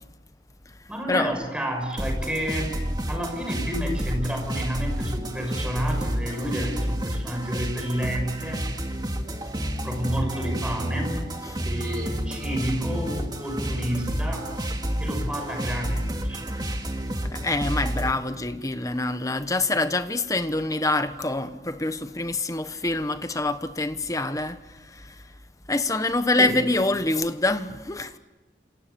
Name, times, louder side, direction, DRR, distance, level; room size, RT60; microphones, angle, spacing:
voice 1, 0.9-2.8 3.1-8.6 9.8-11.2 11.6-14.5 15.0-16.7 26.4-26.6, equal, 5° right, 6.2 m, -30 dB
sound 1, 2.0-18.1, right 1 dB, 25° right, 2.4 m, -30 dB
voice 2, 17.3-24.6 25.7-28.1, left 2 dB, 20° left, 1.1 m, -25 dB
29.5 x 28.0 x 7.0 m
head